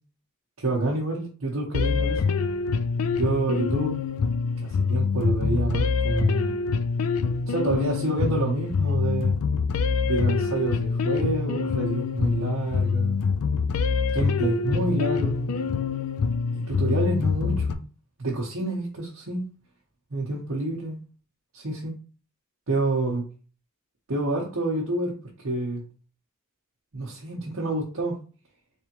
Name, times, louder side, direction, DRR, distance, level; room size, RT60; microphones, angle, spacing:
voice 1, 0.6-2.3 3.1-4.0 4.6-6.5 7.5-9.4 10.1-13.2 14.1-15.5 16.5-17.8 18.2-19.5 20.1-21.0 21.5-21.9 22.7-23.2 24.1-25.2 25.4-25.8 26.9-28.2, right 2 dB, 75° right, 0.9 m, -28 dB
sound 1, 1.7-17.7, left 5 dB, 90° left, 0.4 m, -25 dB
3.5 x 3.4 x 2.9 m
head